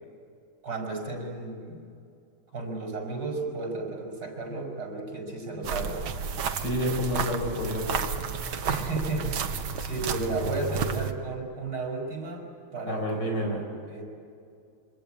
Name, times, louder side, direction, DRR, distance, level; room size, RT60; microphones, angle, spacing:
voice 1, 0.6-1.8 2.5-6.0 8.7-12.5 12.7-13.4 13.9-14.0, right 3 dB, 45° right, 0 dB, 5.3 m, -33 dB
sound 1, 5.6-11.1, right 6 dB, 80° right, 2.0 m, -31 dB
voice 2, 6.6-8.0 12.9-13.6, equal, 55° left, 1 dB, 5.2 m, -29 dB
27.0 x 24.5 x 8.7 m, 2.5 s
omnidirectional pair, 2.3 m